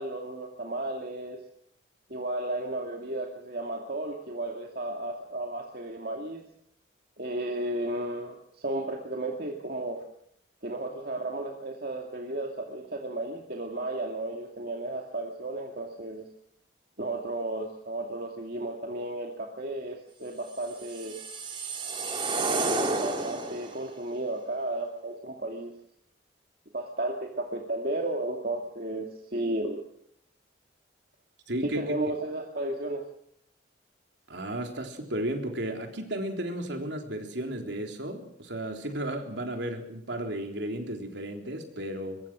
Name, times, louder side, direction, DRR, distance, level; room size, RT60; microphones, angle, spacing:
voice 1, 0.0-1.4 2.1-6.4 7.2-10.0 10.6-16.2 17.0-21.2 22.3-25.7 26.7-29.9 31.6-33.0, right 1 dB, 50° right, 1 dB, 2.3 m, -33 dB
sound 1, 20.6-23.8, right 3 dB, 25° right, 2.3 m, -31 dB
voice 2, 31.5-31.8 34.3-42.2, right 1 dB, 65° right, 3 dB, 3.8 m, -34 dB
23.0 x 22.5 x 6.3 m, 0.71 s
head